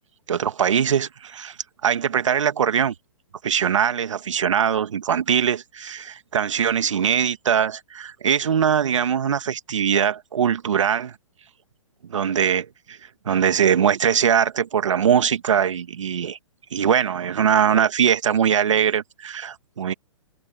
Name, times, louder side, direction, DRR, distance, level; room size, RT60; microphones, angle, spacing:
voice 1, 0.3-1.6 1.8-2.9 3.4-11.1 12.1-13.0 13.3-16.4 16.7-19.9, right 8 dB, 70° right, 1.9 m, -21 dB
hypercardioid pair, 130°, 17 cm